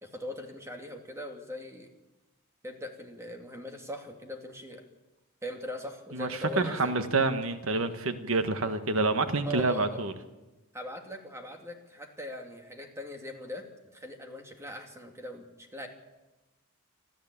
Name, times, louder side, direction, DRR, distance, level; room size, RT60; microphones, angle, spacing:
voice 1, 0.0-1.9 2.6-4.8 5.4-6.9 9.4-10.1 10.7-13.7 13.9-15.9, left 1 dB, 15° right, 4 dB, 2.6 m, -40 dB
voice 2, 6.1-10.1, right 3 dB, 65° right, 9 dB, 1.5 m, -28 dB
26.0 x 13.5 x 8.7 m, 1.1 s
head